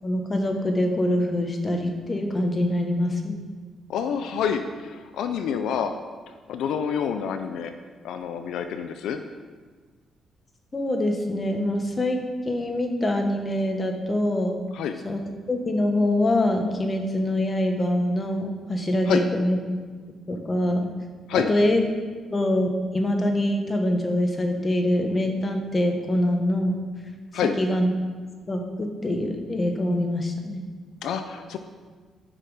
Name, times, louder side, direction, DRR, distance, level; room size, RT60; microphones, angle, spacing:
voice 1, 0.0-3.5 10.7-14.6 15.0-15.2 15.5-19.6 20.3-20.8 21.3-21.8 22.3-26.8 27.6-27.9 28.5-30.6, left 1 dB, 25° left, 4 dB, 1.4 m, -24 dB
voice 2, 3.9-5.9 6.5-7.7 8.0-9.2 14.7-15.0 19.1-19.2 21.3-21.5 27.3-27.5 31.0-31.6, left 7 dB, 80° left, 8 dB, 0.5 m, -27 dB
9.8 x 6.1 x 5.0 m, 1.5 s
cardioid pair, 90°, 0 cm